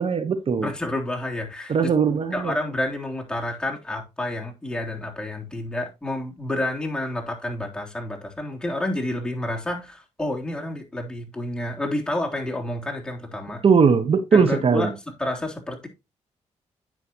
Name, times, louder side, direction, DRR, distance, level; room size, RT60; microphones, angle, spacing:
voice 1, 0.0-0.7 1.7-2.6 13.6-14.9, right 5 dB, 50° right, 1.2 m, -19 dB
voice 2, 0.6-1.9 2.3-13.6 14.3-15.9, left 1 dB, 5° left, 3.4 m, -29 dB
10.0 x 7.5 x 3.0 m
supercardioid pair, 65°, 12 cm